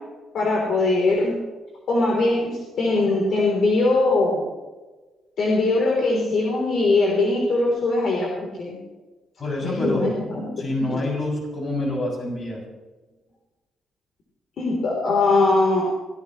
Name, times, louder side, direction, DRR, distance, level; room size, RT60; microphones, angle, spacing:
voice 1, 0.3-1.4 1.9-4.4 5.4-8.8 9.6-11.0 14.6-15.8, left 2 dB, 55° left, -2 dB, 3.7 m, -21 dB
voice 2, 9.4-12.6, left 1 dB, 30° left, -2 dB, 7.3 m, -27 dB
24.0 x 16.5 x 3.2 m, 1.2 s
cardioid pair, 145°, 0 cm